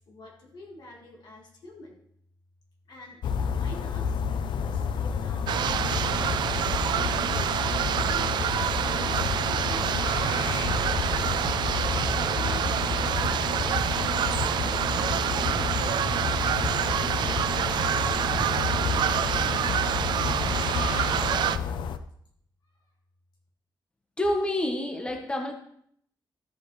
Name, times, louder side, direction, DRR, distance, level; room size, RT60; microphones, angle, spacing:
voice 1, 0.1-2.0 2.9-7.3 7.7-11.6 12.3-12.7 13.0-19.1, left 2 dB, 65° left, 0 dB, 1.8 m, -47 dB
sound 1, 3.2-22.0, left 7 dB, 85° left, 0.6 m, -30 dB
sound 2, 5.5-21.6, right 9 dB, 75° right, 0.4 m, -27 dB
sound 3, 10.3-10.4 10.8-10.9 11.4-11.5 12.0-12.1 12.6-12.7 13.2-13.3 13.8-13.9 14.4-14.5 15.0-15.1 15.5-15.6 16.0-16.3 16.6-16.7 17.2-17.3 17.8-17.9 18.4-18.5 18.9-19.0 19.4-19.5, right 4 dB, 50° right, 1.1 m, -36 dB
voice 2, 24.2-25.5, left 1 dB, 15° left, 3 dB, 1.0 m, -28 dB
13.5 x 7.9 x 3.2 m, 0.68 s
wide cardioid pair, 175°, 8 cm